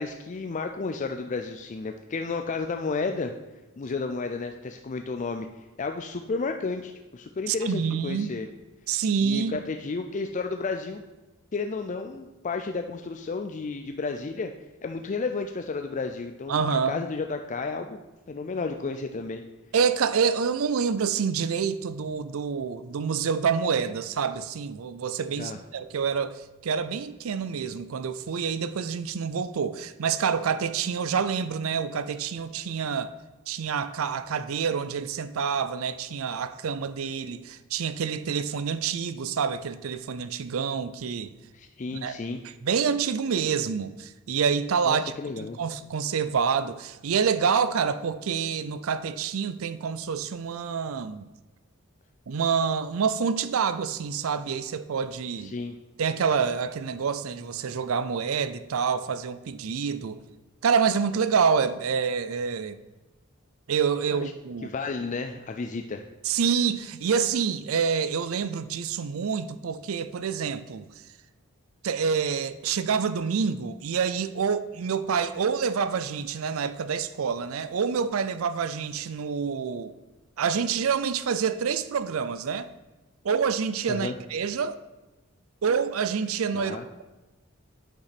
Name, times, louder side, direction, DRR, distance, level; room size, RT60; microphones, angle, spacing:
voice 1, 0.0-3.3 3.8-5.5 5.8-8.5 9.2-11.0 11.5-14.5 14.8-18.0 18.3-19.4 25.4-25.6 41.5-42.4 44.9-45.6 55.4-55.8 64.1-64.3 64.6-66.0 83.9-84.1 86.5-86.8, left 4 dB, 35° left, 0.4 m, -32 dB
voice 2, 7.5-8.3 8.9-9.6 16.5-17.0 19.7-33.1 33.5-41.3 42.0-42.2 42.6-51.3 52.3-55.5 56.0-60.2 60.6-62.8 63.7-64.7 66.2-70.9 71.8-79.9 80.4-82.7 83.2-84.8 85.6-86.8, right 6 dB, 75° right, 0.5 m, -27 dB
8.8 x 5.4 x 5.9 m
head